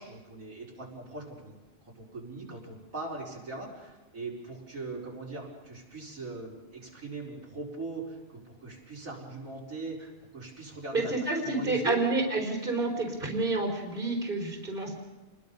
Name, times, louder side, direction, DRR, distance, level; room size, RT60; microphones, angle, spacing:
voice 1, 0.0-1.6 1.9-12.0, right 3 dB, 85° right, -3 dB, 5.1 m, -40 dB
voice 2, 10.9-14.9, right 2 dB, 40° right, 1 dB, 4.2 m, -29 dB
29.5 x 21.5 x 5.5 m, 1.1 s
omnidirectional pair, 1.4 m